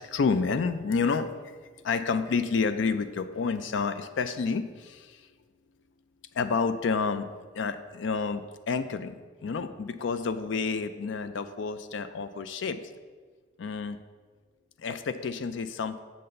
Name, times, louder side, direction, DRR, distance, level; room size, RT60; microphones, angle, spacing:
voice 1, 0.0-5.3 6.3-7.3 7.5-12.8 13.6-14.0 14.8-16.0, left 5 dB, 75° left, 11 dB, 0.4 m, -29 dB
7.5 x 4.0 x 6.6 m, 1.5 s
head